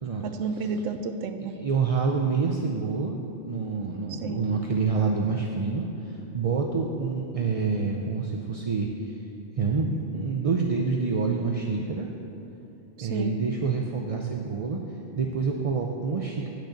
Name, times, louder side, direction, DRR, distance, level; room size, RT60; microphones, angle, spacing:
voice 1, 0.2-1.6 4.1-4.4 13.0-13.4, right 4 dB, 85° right, 9 dB, 1.0 m, -31 dB
voice 2, 1.5-9.1 9.6-12.1 13.0-14.8 15.2-16.5, right 4 dB, 40° right, 0 dB, 0.5 m, -27 dB
8.4 x 6.5 x 8.0 m, 2.9 s
omnidirectional pair, 1.3 m